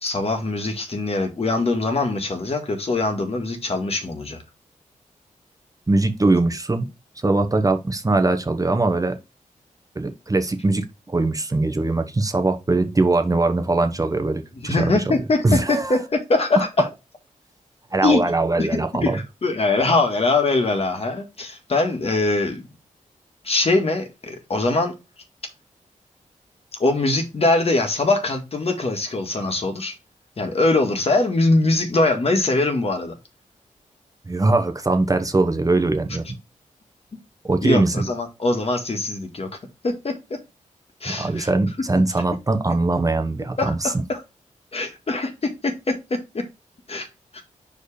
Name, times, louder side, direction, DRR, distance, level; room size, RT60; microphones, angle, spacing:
voice 1, 0.0-4.4 14.6-16.9 18.0-18.2 18.6-18.7 19.0-22.7 23.4-24.9 26.8-29.9 30.4-33.1 37.6-39.5 39.8-40.4 41.0-41.5 43.6-44.2 44.7-46.4 46.9-47.1 47.3-47.4, left 2 dB, 45° left, 1.9 m, -22 dB
voice 2, 5.9-6.9 7.2-9.2 9.9-15.0 15.4-16.0 17.9-19.2 34.3-36.2 37.4-38.1 41.1-43.9, right 2 dB, 25° right, 1.0 m, -21 dB
5.0 x 4.6 x 4.9 m
cardioid pair, 80°, 14 cm